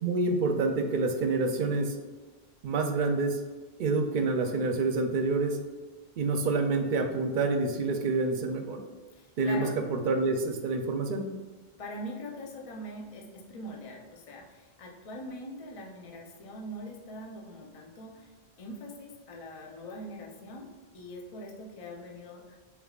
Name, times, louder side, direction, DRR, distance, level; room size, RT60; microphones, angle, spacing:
voice 1, 0.0-1.9 2.6-3.4 3.8-5.6 6.2-8.8 9.4-11.2, right 3 dB, 60° right, 5 dB, 0.6 m, -27 dB
voice 2, 9.1-9.8 11.8-22.6, equal, 40° left, -1 dB, 0.5 m, -42 dB
4.5 x 3.5 x 2.3 m, 1.3 s
omnidirectional pair, 1.0 m